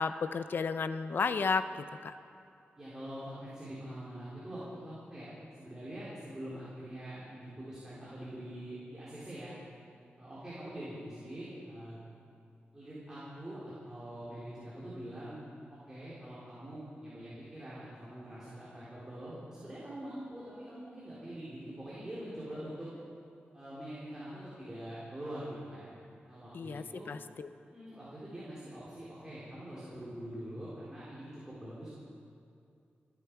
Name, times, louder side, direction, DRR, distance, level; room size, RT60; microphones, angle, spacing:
voice 1, 0.0-2.1 26.5-27.5, left 5 dB, 60° left, 11 dB, 0.6 m, -33 dB
voice 2, 2.8-5.3 5.5-9.5 10.2-12.0 12.7-15.4 15.7-22.9 23.5-25.9 26.3-27.1 27.7-31.9, right 1 dB, 15° right, -9 dB, 3.8 m, -44 dB
27.0 x 10.5 x 4.7 m, 2.5 s
wide cardioid pair, 145°, 4 cm